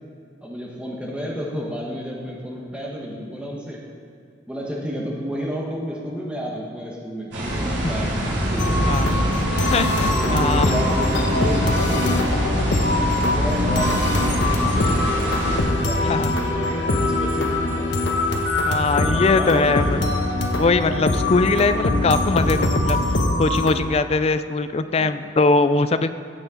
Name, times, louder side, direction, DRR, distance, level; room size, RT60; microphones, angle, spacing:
voice 1, 0.4-3.8 4.5-8.2 8.5-9.1 9.4-9.8 10.1-12.1 12.9-15.3 15.6-18.0 18.3-18.4 19.0-20.1 25.0-25.2, equal, 5° right, -3 dB, 1.4 m, -31 dB
sound 1, 7.3-15.6, equal, 85° right, 3.0 m, -24 dB
sound 2, 8.6-23.7, left 2 dB, 80° left, 1.0 m, -22 dB
voice 2, 9.7-10.7 16.0-16.4 18.7-20.0 20.5-23.0 23.4-26.2, left 3 dB, 35° left, 12 dB, 0.4 m, -21 dB
15.5 x 6.9 x 3.9 m, 2.4 s
head